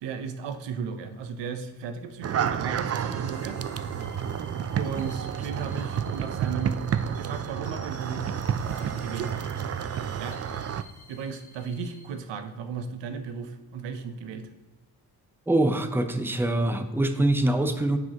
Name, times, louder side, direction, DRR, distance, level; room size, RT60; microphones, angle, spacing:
voice 1, 0.0-3.6 4.8-6.8 7.1-8.3 8.6-9.5 10.1-10.4 11.1-14.5, right 6 dB, 85° right, 8 dB, 0.7 m, -35 dB
sound 1, 2.2-10.8, right 8 dB, 40° right, 0.4 m, -30 dB
sound 2, 2.8-12.1, left 3 dB, 65° left, 1.6 m, -52 dB
voice 2, 15.5-18.0, right 1 dB, 5° right, 8 dB, 0.7 m, -24 dB
9.5 x 4.9 x 2.9 m, 1.2 s
supercardioid pair, 50°, 42 cm